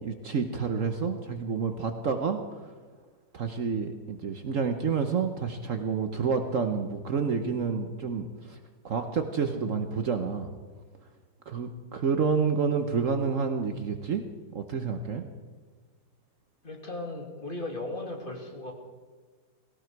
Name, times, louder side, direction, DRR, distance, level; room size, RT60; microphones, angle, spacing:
voice 1, 0.0-2.7 3.3-8.6 8.8-10.5 11.5-14.2 14.5-15.3, right 5 dB, 55° right, 6 dB, 1.1 m, -29 dB
voice 2, 16.6-18.7, left 2 dB, 30° left, 1 dB, 2.3 m, -36 dB
17.5 x 17.5 x 4.6 m, 1.5 s
omnidirectional pair, 1.8 m